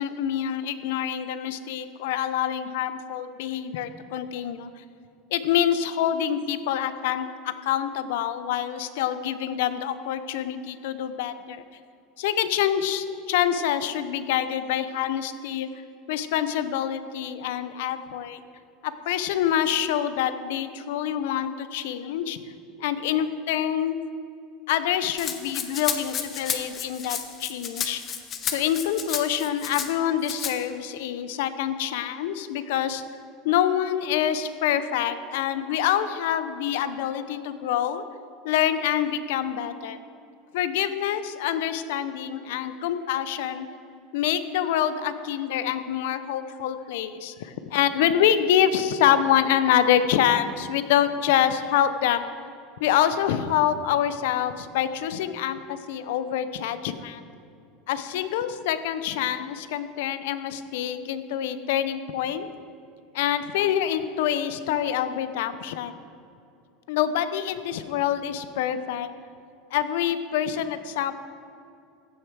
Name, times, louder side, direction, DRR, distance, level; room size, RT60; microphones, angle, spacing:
voice 1, 0.0-4.7 5.3-11.6 12.2-15.7 16.1-18.4 18.8-22.4 22.8-24.0 24.7-28.0 28.4-33.0 33.4-38.0 38.4-40.0 40.5-43.7 44.1-52.3 52.8-57.2 57.9-62.5 63.1-65.9 66.9-69.1 69.7-71.1, left 10 dB, 75° left, 12 dB, 0.7 m, -26 dB
Rattle (instrument), 25.2-29.9 30.2-30.5, left 8 dB, 40° left, 1.0 m, -31 dB
15.0 x 6.7 x 4.8 m, 2.5 s
supercardioid pair, 105°, 0 cm